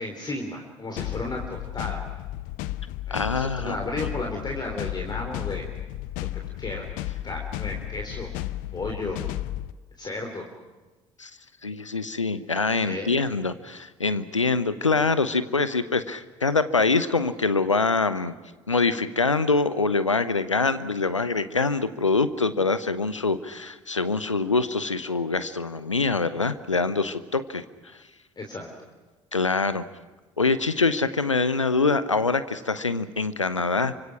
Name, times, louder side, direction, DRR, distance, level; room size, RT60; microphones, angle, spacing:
voice 1, 0.0-2.0 3.1-5.6 6.2-6.3 6.6-6.9 7.2-8.3 8.7-9.2 10.0-10.4 12.8-13.2 28.4-28.7, left 2 dB, 25° left, 2 dB, 3.6 m, -33 dB
sound 1, 1.0-9.7, left 14 dB, 60° left, 0.8 m, -33 dB
voice 2, 3.1-3.8 11.2-11.3 11.6-18.3 18.7-27.6 29.3-29.8 30.4-33.9, left 3 dB, 85° left, 14 dB, 0.8 m, -24 dB
28.0 x 25.0 x 6.0 m, 1.2 s
figure-of-eight pair, 55°, 16 cm